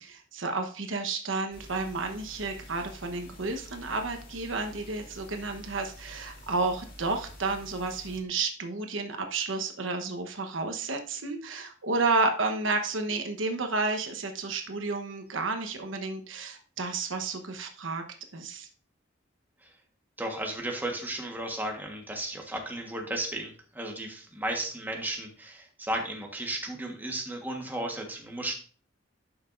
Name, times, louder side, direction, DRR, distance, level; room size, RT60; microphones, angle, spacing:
voice 1, 0.0-18.0 18.3-18.7, right 3 dB, 90° right, 6 dB, 1.1 m, -31 dB
sound 1, 1.5-8.2, equal, 50° left, 2.3 m, -48 dB
voice 2, 20.2-28.5, right 1 dB, 10° right, 1 dB, 1.4 m, -34 dB
11.0 x 5.9 x 2.6 m, 0.41 s
head